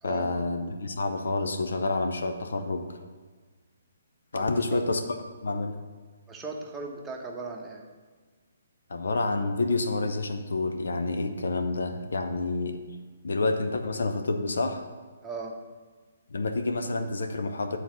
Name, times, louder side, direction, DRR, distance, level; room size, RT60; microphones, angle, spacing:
voice 1, 0.0-3.0 4.3-5.0 5.4-5.8 8.9-12.8 13.2-14.8 16.3-17.8, left 3 dB, 60° left, 7 dB, 0.7 m, -28 dB
voice 2, 4.4-4.8 6.3-7.8 15.2-15.5, right 3 dB, 10° right, -1 dB, 1.0 m, -38 dB
9.1 x 4.1 x 6.1 m, 1.4 s
figure-of-eight pair, 130°, 0 cm